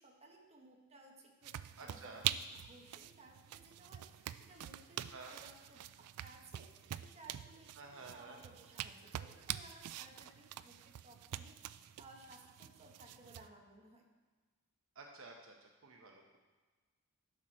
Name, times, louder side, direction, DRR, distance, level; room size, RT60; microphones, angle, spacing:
voice 1, 0.0-2.2 2.5-6.7 6.9-14.0, right 2 dB, 30° right, 0 dB, 1.4 m, -60 dB
sound 1, 1.4-13.5, right 12 dB, 85° right, 0.3 m, -45 dB
voice 2, 1.8-2.2 5.1-5.4 7.8-8.4 14.9-16.4, right 3 dB, 65° right, 1 dB, 0.9 m, -52 dB
12.0 x 6.3 x 4.3 m, 1.3 s
head